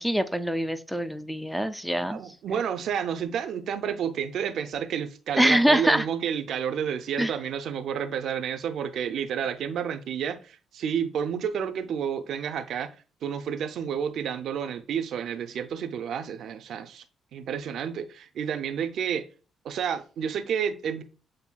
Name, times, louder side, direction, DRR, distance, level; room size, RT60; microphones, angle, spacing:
voice 1, 0.0-2.2 5.4-6.1 7.2-7.3, equal, ahead, 0.3 m, -24 dB
voice 2, 2.1-12.9 13.2-17.0 17.3-19.3 19.6-21.0, right 8 dB, 70° right, 0.4 m, -30 dB
7.0 x 2.6 x 2.2 m
cardioid pair, 90°, 0 cm